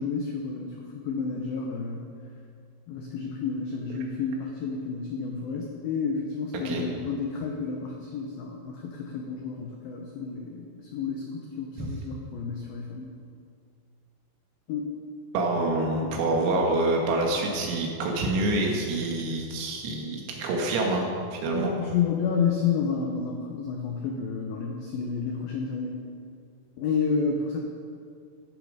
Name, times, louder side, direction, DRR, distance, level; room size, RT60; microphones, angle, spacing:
voice 1, 0.0-2.1 2.9-13.1 14.7-14.9 16.0-16.1 21.5-26.1 26.8-27.6, left 5 dB, 90° left, 1 dB, 2.1 m, -30 dB
voice 2, 15.3-21.7, right 2 dB, 85° right, 0 dB, 4.7 m, -27 dB
16.0 x 12.0 x 5.0 m, 2.3 s
omnidirectional pair, 5.9 m